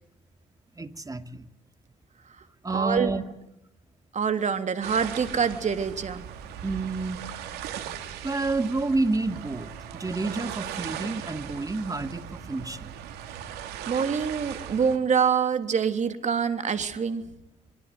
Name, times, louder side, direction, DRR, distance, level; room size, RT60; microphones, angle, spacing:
voice 1, 0.8-1.5 2.6-3.2 6.6-7.2 8.2-12.9, right 3 dB, 20° right, 9 dB, 2.5 m, -29 dB
voice 2, 2.7-3.1 4.1-6.2 13.9-17.2, right 6 dB, 45° right, 9 dB, 3.2 m, -25 dB
sound 1, 4.8-15.0, right 10 dB, 80° right, 2.9 m, -38 dB
24.0 x 23.5 x 9.6 m, 0.85 s
supercardioid pair, 60°, 16 cm